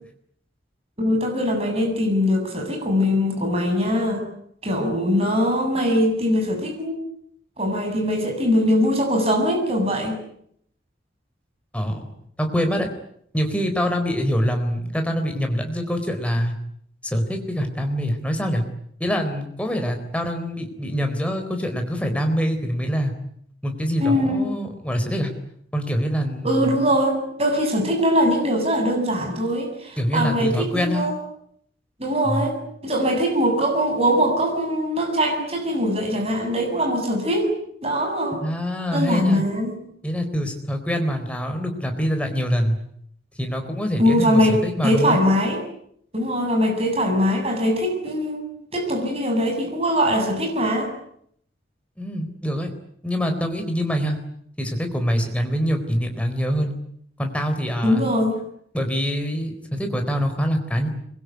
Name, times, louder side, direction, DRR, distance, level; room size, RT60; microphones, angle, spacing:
voice 1, 1.0-4.3 4.6-7.0 7.6-10.2 24.0-24.5 26.4-31.1 32.0-32.6 32.8-37.5 37.8-38.4 38.9-39.8 44.0-45.6 46.1-50.9 57.8-58.4, equal, 30° right, 2 dB, 7.5 m, -22 dB
voice 2, 11.7-12.1 12.4-12.9 13.3-16.5 17.0-18.6 19.0-23.1 23.6-25.3 25.7-26.8 30.0-31.1 32.2-32.5 38.4-39.4 40.0-42.8 43.4-45.2 52.0-52.7 53.0-54.2 54.6-56.7 57.2-58.1 58.7-60.9, equal, 5° left, 5 dB, 4.1 m, -25 dB
25.5 x 22.5 x 9.6 m, 0.70 s
head